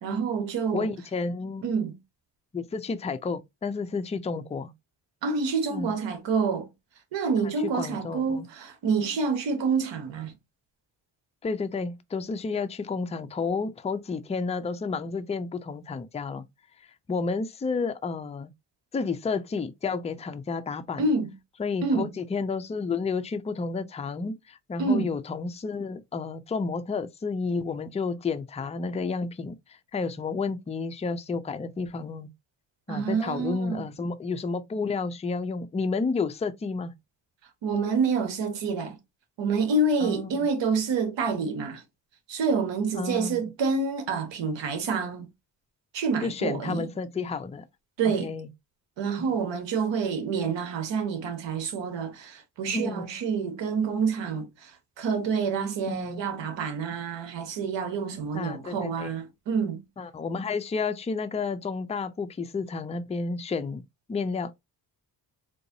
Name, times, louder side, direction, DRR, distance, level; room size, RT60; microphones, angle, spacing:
voice 1, 0.0-0.9 1.6-2.0 5.2-6.7 7.1-10.3 21.0-21.3 21.8-22.1 24.8-25.1 32.9-33.8 37.6-39.0 39.4-41.8 42.3-45.3 45.9-46.9 48.0-48.3 49.0-59.8, right 4 dB, 85° right, 1.1 m, -27 dB
voice 2, 0.7-1.6 2.5-4.7 5.7-5.9 7.6-8.5 11.4-16.4 17.1-18.5 18.9-21.0 21.6-32.3 32.9-36.9 40.0-40.3 42.9-43.4 46.2-47.7 48.0-48.5 49.2-49.3 52.7-53.1 55.9-56.2 58.3-59.1 60.0-63.8 64.1-64.5, left 4 dB, 15° left, 0.4 m, -31 dB
3.9 x 2.6 x 2.7 m
cardioid pair, 75°, 42 cm